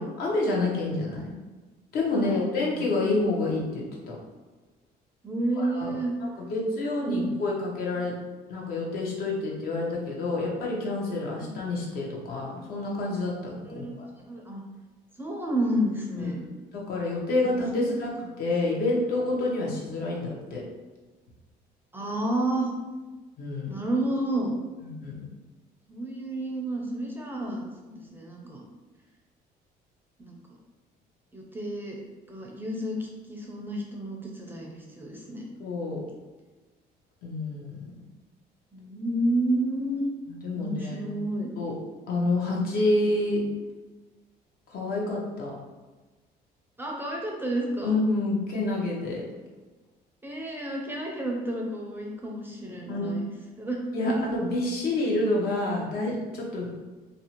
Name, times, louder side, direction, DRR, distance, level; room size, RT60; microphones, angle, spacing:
voice 1, 0.0-1.3 1.9-4.2 5.6-5.9 6.2-8.1 8.5-14.1 16.2-16.4 16.7-18.1 18.4-20.6 23.4-23.7 24.8-25.2 35.6-36.0 37.2-37.8 40.3-41.2 41.6-41.7 42.1-43.4 44.7-45.6 47.8-49.2 52.9-53.2 53.9-56.7, left 2 dB, 65° left, -3 dB, 0.7 m, -28 dB
voice 2, 2.1-2.9 5.2-6.1 7.0-7.3 11.4-11.6 13.6-14.6 15.2-16.4 17.4-17.9 21.9-22.7 23.7-24.5 25.9-28.7 30.2-30.6 31.3-32.0 32.3-35.5 38.7-40.1 40.5-41.5 46.8-47.9 50.2-53.3 53.6-54.3, right 1 dB, 10° right, -1 dB, 0.4 m, -30 dB
2.5 x 2.1 x 2.8 m, 1.2 s
cardioid pair, 110°, 17 cm